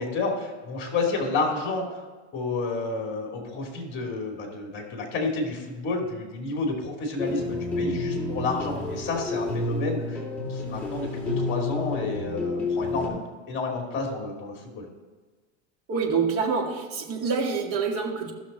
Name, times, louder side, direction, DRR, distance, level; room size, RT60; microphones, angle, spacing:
voice 1, 0.0-2.0 2.3-10.2 10.5-13.2 13.5-14.9, left 3 dB, 30° left, 1 dB, 2.7 m, -30 dB
sound 1, 7.2-13.1, left 3 dB, 5° left, 2.4 m, -30 dB
voice 2, 15.9-18.3, right 5 dB, 40° right, -1 dB, 2.2 m, -26 dB
15.5 x 6.5 x 4.3 m, 1.4 s
supercardioid pair, 140°, 35 cm